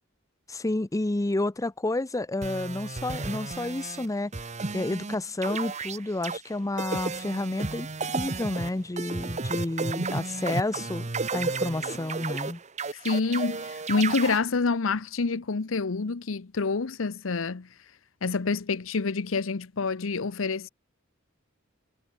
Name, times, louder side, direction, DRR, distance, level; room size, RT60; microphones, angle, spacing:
voice 1, 0.5-4.3 4.7-11.0 11.3-12.6, left 2 dB, 15° left, 0.6 m, -30 dB
sound 1, 2.4-4.1 4.3-5.2 5.4-6.4 6.8-14.4, right 4 dB, 35° right, 1.1 m, -33 dB
voice 2, 13.0-17.7 18.2-20.7, left 4 dB, 80° left, 0.8 m, -27 dB
head